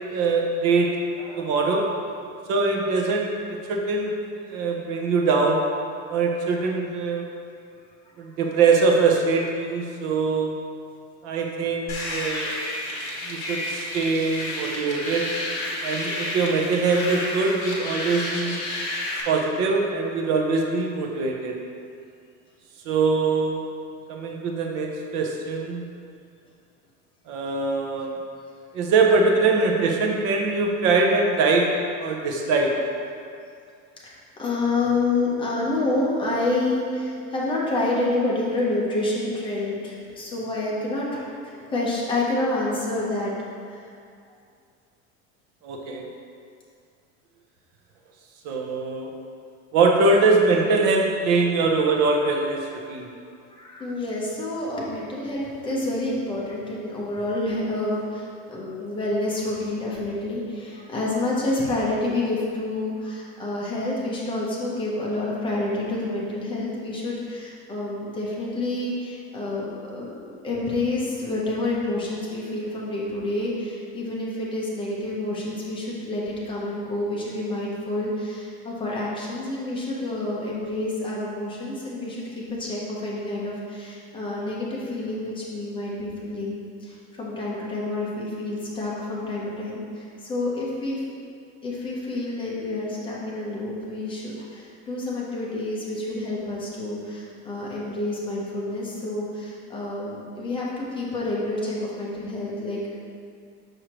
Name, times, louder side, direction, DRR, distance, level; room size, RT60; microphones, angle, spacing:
voice 1, 0.1-1.0 1.4-1.9 2.5-5.7 6.1-7.3 8.2-10.5 11.2-12.5 13.2-15.3 15.8-18.6 19.3-21.6 22.9-23.7 24.1-25.8 27.3-28.2 28.7-31.7 32.0-32.7 45.6-46.0 48.4-49.1 49.7-53.1, right 3 dB, 50° right, 1 dB, 0.7 m, -22 dB
sound 1, 11.9-19.2, left 1 dB, 40° left, 1.5 m, -31 dB
voice 2, 34.0-43.3 43.7-43.8 51.7-51.8 53.5-91.0 91.6-103.0, left 2 dB, 15° left, -5 dB, 0.8 m, -28 dB
6.4 x 6.3 x 3.0 m, 2.3 s
cardioid pair, 175°, 32 cm